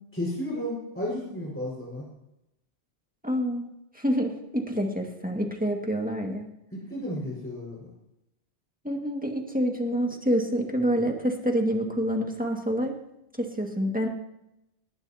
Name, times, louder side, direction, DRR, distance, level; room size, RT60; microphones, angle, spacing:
voice 1, 0.1-2.0 6.7-7.9, left 1 dB, 10° left, -5 dB, 5.3 m, -33 dB
voice 2, 3.2-3.7 3.9-6.5 8.8-13.0 13.4-14.1, equal, 10° right, 1 dB, 1.9 m, -27 dB
20.0 x 17.5 x 2.9 m, 0.87 s
omnidirectional pair, 1.1 m